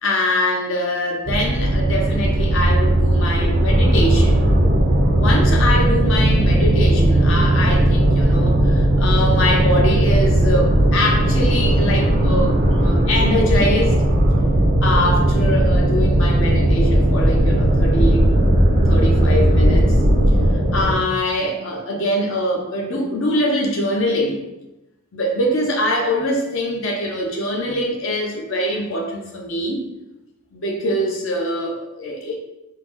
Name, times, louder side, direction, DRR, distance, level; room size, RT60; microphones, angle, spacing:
voice 1, 0.0-4.5 5.1-14.0 14.8-18.2 18.9-19.9 20.7-24.4 25.1-29.8 30.5-32.3, left 1 dB, 60° left, 0 dB, 0.7 m, -23 dB
sound 1, 1.3-20.5, right 1 dB, 35° right, 0.4 m, -18 dB
sound 2, 3.7-21.0, equal, 45° left, 1.2 m, -20 dB
3.8 x 2.1 x 2.9 m, 0.94 s
head